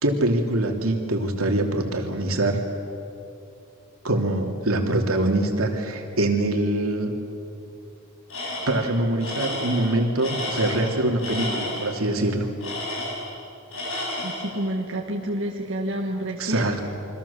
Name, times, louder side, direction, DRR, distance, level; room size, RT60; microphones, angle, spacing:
voice 1, 0.0-2.6 4.0-7.1 8.7-12.5 16.4-16.9, right 1 dB, 85° right, 3 dB, 3.0 m, -24 dB
Tools, 8.3-8.9 9.2-11.9 12.6-13.4 13.7-14.5, left 1 dB, 70° left, 6.5 m, -31 dB
voice 2, 14.2-16.7, right 1 dB, 60° right, -1 dB, 2.0 m, -29 dB
28.0 x 24.5 x 7.2 m, 2.8 s
head